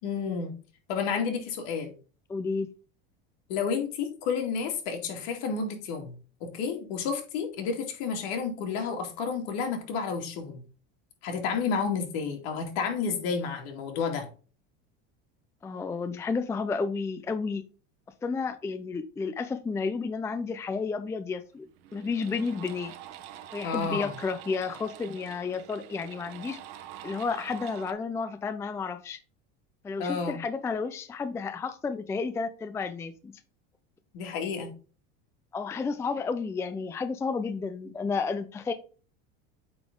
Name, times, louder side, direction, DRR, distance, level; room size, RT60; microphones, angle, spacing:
voice 1, 0.0-0.5 0.9-1.9 3.5-6.1 6.4-10.6 11.2-14.3 23.6-24.1 30.0-30.4 34.1-34.7, left 5 dB, 65° left, 3 dB, 2.4 m, -31 dB
voice 2, 2.3-2.7 15.6-17.6 18.2-21.7 21.9-22.9 23.5-26.6 27.0-29.2 29.8-33.3 35.5-38.7, left 4 dB, 10° left, 9 dB, 0.4 m, -31 dB
sound 1, 21.2-21.3 21.7-27.9, right 11 dB, 80° right, 1.1 m, -45 dB
8.7 x 4.0 x 3.6 m, 0.36 s
supercardioid pair, 140°, 30 cm